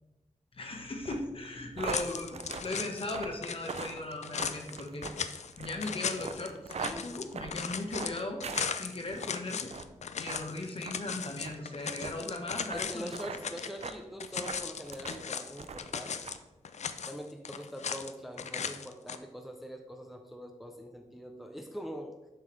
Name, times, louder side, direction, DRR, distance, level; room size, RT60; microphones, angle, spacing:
voice 1, 0.5-5.0 5.6-8.4 8.7-9.7 10.1-13.1, left 2 dB, 45° left, 2 dB, 1.1 m, -38 dB
sound 1, 1.0-9.3 9.6-9.9 10.3-10.4 10.8-11.0 11.4-11.6 12.0-12.1 12.7-12.8 13.1-13.4 13.8-14.0 14.4-15.2 15.6-15.9 16.2-16.4, right 5 dB, 55° right, 0.5 m, -41 dB
sound 2, 1.9-3.2 3.4-13.9 14.2-16.4 16.6-18.1 18.4-19.2, left 6 dB, 65° left, 0.4 m, -38 dB
voice 2, 12.7-16.3 17.1-22.1, equal, ahead, 3 dB, 0.5 m, -43 dB
7.2 x 5.7 x 3.2 m, 1.0 s
wide cardioid pair, 125°, 13 cm